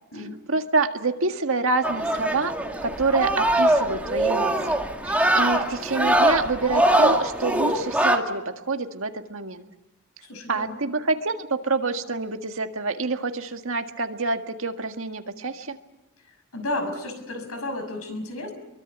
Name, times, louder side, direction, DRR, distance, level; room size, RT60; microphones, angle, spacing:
voice 1, 0.5-2.5 2.8-4.8 5.0-9.6 10.5-15.8, right 3 dB, 65° right, 6 dB, 1.9 m, -27 dB
sound 1, 1.8-8.2, right 1 dB, 5° right, 2.1 m, -22 dB
voice 2, 10.2-10.8 16.5-18.5, left 2 dB, 80° left, 6 dB, 6.1 m, -32 dB
24.5 x 23.5 x 8.2 m, 0.98 s
head